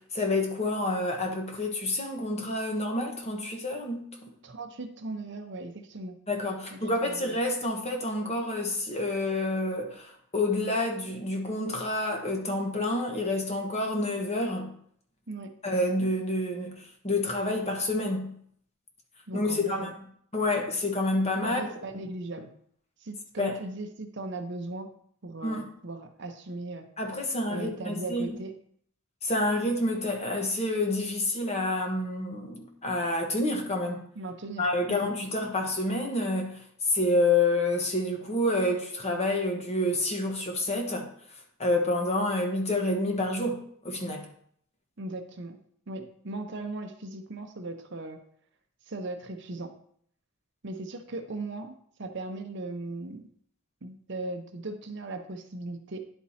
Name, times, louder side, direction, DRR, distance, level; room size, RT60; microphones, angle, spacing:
voice 1, 0.0-4.3 6.3-14.7 15.6-18.4 19.3-19.9 20.3-21.6 23.4-23.6 25.4-25.6 27.0-28.3 29.2-34.0 34.6-36.6 36.9-41.1 41.6-44.2, left 2 dB, 30° left, 1.2 m, -28 dB
voice 2, 4.4-6.2 6.7-7.3 15.3-15.5 19.3-19.9 21.4-22.5 23.0-24.9 25.2-26.9 27.5-28.5 34.2-35.1 45.0-45.6 45.9-48.2 48.9-49.7 50.6-51.7 52.0-53.2 53.8-56.0, right 2 dB, 55° right, 0.8 m, -38 dB
10.5 x 4.5 x 4.2 m
head